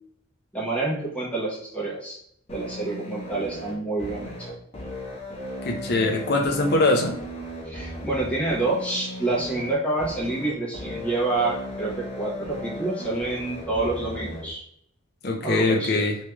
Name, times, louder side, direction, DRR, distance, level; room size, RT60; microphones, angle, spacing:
voice 1, 0.5-2.2 2.5-4.5 7.7-14.6 15.4-16.1, right 2 dB, 5° left, -5 dB, 1.0 m, -28 dB
sound 1, 2.5-14.5, equal, 30° left, 1.0 m, -36 dB
voice 2, 5.6-7.2 15.2-16.2, left 2 dB, 55° left, 2 dB, 0.7 m, -22 dB
3.3 x 3.2 x 3.3 m, 0.70 s
head